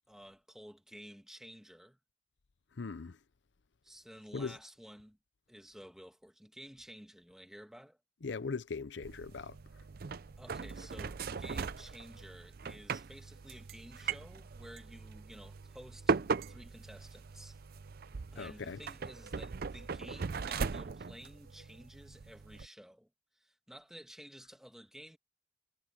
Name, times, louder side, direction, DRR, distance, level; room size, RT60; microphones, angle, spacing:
voice 1, 0.1-2.0 3.8-5.2 5.5-8.0 10.4-16.2 16.5-17.6 18.3-23.1 23.3-25.2, equal, ahead, 1.6 m, -53 dB
voice 2, 2.8-3.2 4.3-4.6 8.2-9.6 18.4-18.8, left 4 dB, 65° left, 0.6 m, -39 dB
sound 1, 9.0-22.7, right 5 dB, 50° right, 0.5 m, -39 dB
head